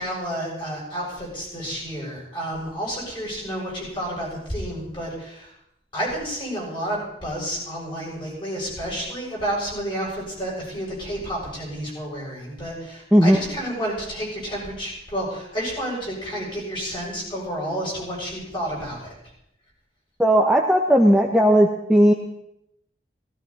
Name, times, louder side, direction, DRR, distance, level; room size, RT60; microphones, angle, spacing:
voice 1, 0.0-5.5 5.9-19.1, equal, 30° left, -4 dB, 7.7 m, -30 dB
voice 2, 20.2-22.1, equal, 5° right, 0 dB, 0.9 m, -16 dB
17.0 x 16.0 x 4.2 m, 0.80 s
head